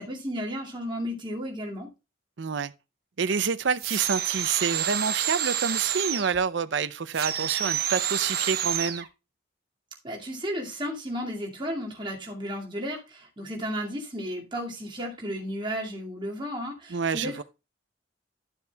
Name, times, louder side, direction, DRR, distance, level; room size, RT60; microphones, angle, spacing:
voice 1, 0.0-1.9 10.0-17.4, equal, 25° right, 2.3 m, -33 dB
voice 2, 2.4-2.7 3.2-9.1 16.9-17.4, right 6 dB, 70° right, 0.6 m, -28 dB
sound 1, 3.8-6.4 7.1-9.1, right 10 dB, 50° right, 1.0 m, -29 dB
12.5 x 7.0 x 2.3 m
head